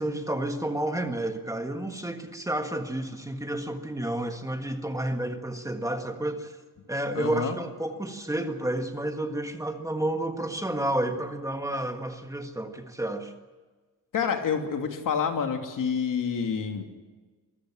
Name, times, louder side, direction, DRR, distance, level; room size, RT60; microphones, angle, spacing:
voice 1, 0.0-6.6 6.9-13.3, right 1 dB, 10° right, 5 dB, 1.5 m, -30 dB
voice 2, 7.1-7.6 14.1-16.8, left 6 dB, 60° left, 4 dB, 2.9 m, -28 dB
24.5 x 14.5 x 9.8 m, 1.3 s
cardioid pair, 145°, 35 cm